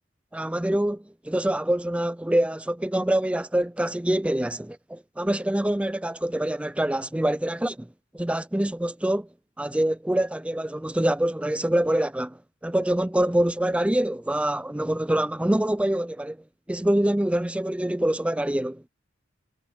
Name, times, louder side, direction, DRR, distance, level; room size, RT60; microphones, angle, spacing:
voice 1, 0.3-7.9 8.1-9.3 9.6-12.4 12.6-16.4 16.7-18.9, right 1 dB, 5° right, 0.4 m, -25 dB
head